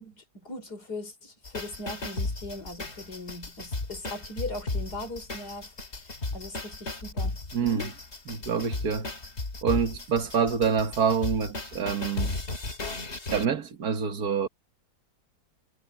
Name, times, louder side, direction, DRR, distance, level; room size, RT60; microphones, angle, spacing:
voice 1, 0.0-7.9, left 2 dB, 90° left, 5.2 m, -39 dB
sound 1, 1.4-13.4, left 2 dB, 45° left, 2.8 m, -35 dB
voice 2, 7.5-7.9 8.3-9.1 9.6-12.4 13.3-14.5, right 6 dB, 70° right, 2.0 m, -26 dB
omnidirectional pair, 1.7 m